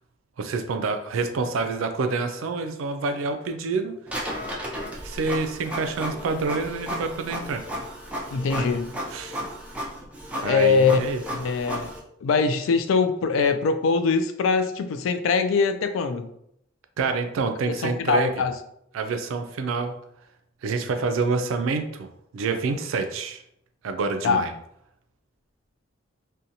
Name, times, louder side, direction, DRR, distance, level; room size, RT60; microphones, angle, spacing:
voice 1, 0.4-4.0 5.0-7.6 8.6-8.7 9.1-9.4 10.4-11.2 17.0-18.3 18.9-19.9 20.6-22.1 22.3-23.4 23.8-24.5, right 4 dB, 85° right, 7 dB, 0.4 m, -27 dB
Printer, 4.1-12.0, equal, 5° right, 0.5 m, -34 dB
voice 2, 8.3-9.0 10.3-11.0 11.3-11.9 12.2-16.3 17.8-18.5 24.2-24.4, left 5 dB, 75° left, 8 dB, 0.3 m, -22 dB
2.7 x 2.2 x 2.6 m, 0.74 s
head